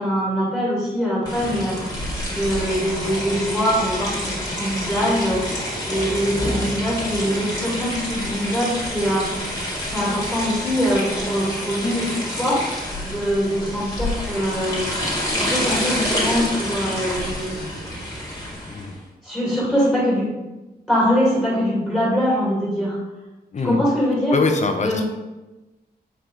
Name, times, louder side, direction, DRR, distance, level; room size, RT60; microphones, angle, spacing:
voice 1, 0.0-1.9 2.3-9.3 9.9-12.8 13.0-14.8 15.3-17.6 19.2-20.3 20.9-23.0 23.6-24.4 24.8-25.0, equal, ahead, -6 dB, 2.4 m, -23 dB
sound 1, 1.2-18.9, equal, 20° left, 1.9 m, -28 dB
voice 2, 18.6-18.9 23.5-23.8 24.3-25.0, left 3 dB, 45° left, 5 dB, 0.8 m, -23 dB
7.2 x 4.9 x 3.8 m, 1.1 s
wide cardioid pair, 175°, 17 cm